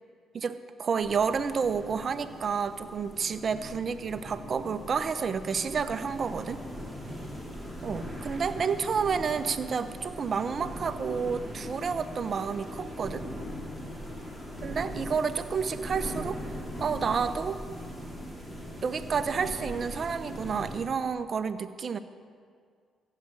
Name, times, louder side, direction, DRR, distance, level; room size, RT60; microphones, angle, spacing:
voice 1, 0.3-6.6 7.8-13.3 14.6-16.5 16.8-17.6 18.8-22.0, right 6 dB, 50° right, 11 dB, 0.8 m, -30 dB
sound 1, 1.0-20.8, equal, 15° left, 4.0 m, -40 dB
15.5 x 6.7 x 8.1 m, 2.1 s
supercardioid pair, 65°, 0 cm